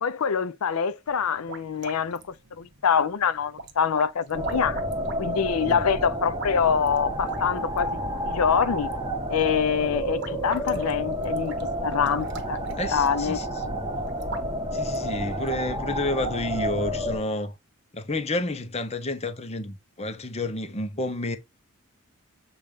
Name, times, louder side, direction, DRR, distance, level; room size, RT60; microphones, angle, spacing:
voice 1, 0.0-2.2 2.6-4.8 5.2-8.0 8.3-8.9 9.3-12.6 12.9-13.4, left 7 dB, 85° left, 0.5 m, -25 dB
sound 1, 1.1-15.6, right 3 dB, 55° right, 1.2 m, -44 dB
sound 2, 4.3-17.2, equal, 20° right, 1.3 m, -30 dB
voice 2, 12.8-13.8 14.7-17.5 17.9-21.4, left 2 dB, 30° left, 0.8 m, -30 dB
7.6 x 2.6 x 5.1 m
head